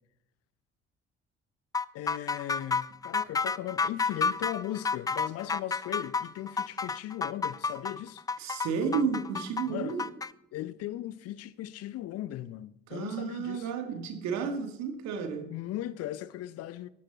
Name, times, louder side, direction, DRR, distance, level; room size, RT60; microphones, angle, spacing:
sound 1, 1.7-10.3, left 4 dB, 10° left, 0.4 m, -30 dB
voice 1, 1.9-8.2 9.7-10.0 10.5-13.7 15.5-16.9, left 13 dB, 50° left, 0.7 m, -38 dB
voice 2, 8.4-10.1 12.9-15.5, right 6 dB, 55° right, 2.2 m, -32 dB
13.0 x 12.0 x 4.1 m
figure-of-eight pair, 45°, 32 cm